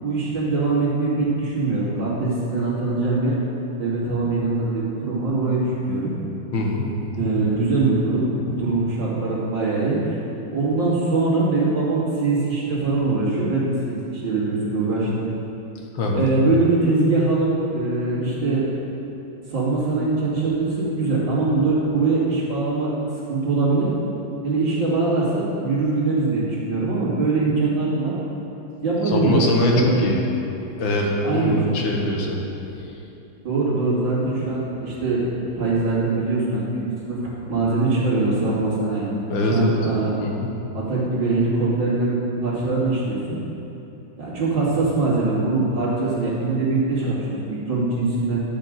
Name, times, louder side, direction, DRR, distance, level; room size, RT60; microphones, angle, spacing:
voice 1, 0.0-3.3 3.8-6.1 7.2-10.2 10.5-15.2 16.1-18.6 19.5-20.7 21.0-22.9 23.3-23.9 24.4-28.2 28.8-30.0 31.1-31.6 33.4-35.2 35.6-39.1 39.5-40.1 40.7-43.4 44.2-48.4, right 3 dB, 65° right, -8 dB, 3.3 m, -22 dB
voice 2, 6.5-6.9 15.9-16.3 29.1-30.2 30.8-32.4 39.3-39.8 40.2-40.5, left 1 dB, 75° left, 0 dB, 2.0 m, -22 dB
12.0 x 5.3 x 7.7 m, 2.9 s
omnidirectional pair, 2.2 m